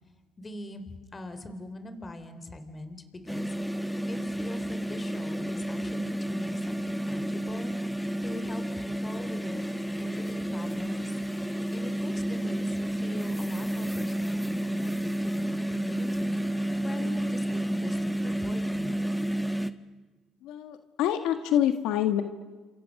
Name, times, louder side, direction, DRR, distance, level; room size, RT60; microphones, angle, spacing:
voice 1, 0.4-9.6 10.0-19.0, left 1 dB, 25° left, 9 dB, 3.8 m, -42 dB
sound 1, 3.3-19.7, right 1 dB, 5° left, 1.4 m, -31 dB
voice 2, 20.4-22.2, left 10 dB, 80° left, 9 dB, 1.5 m, -26 dB
29.5 x 27.0 x 6.6 m, 1.3 s
supercardioid pair, 85°, 0 cm